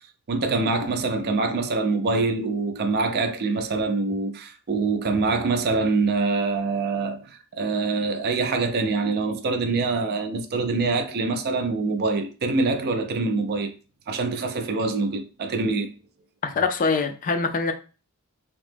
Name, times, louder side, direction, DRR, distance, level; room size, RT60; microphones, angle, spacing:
voice 1, 0.3-13.7 14.1-15.9, right 3 dB, 50° right, 0.4 m, -25 dB
voice 2, 16.4-17.7, left 4 dB, 40° left, 0.4 m, -24 dB
2.9 x 2.1 x 3.2 m
head